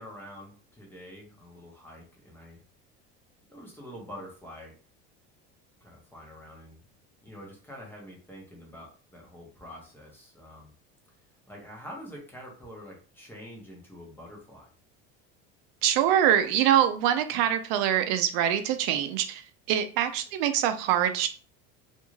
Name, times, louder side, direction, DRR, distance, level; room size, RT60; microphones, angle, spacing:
voice 1, 0.0-2.6 3.5-4.7 5.8-6.8 7.2-10.7 11.5-14.7, equal, 5° left, 0.7 m, -46 dB
voice 2, 15.8-19.4 19.7-21.3, right 10 dB, 80° right, 0.5 m, -24 dB
2.5 x 2.2 x 3.1 m
cardioid pair, 155°, 30 cm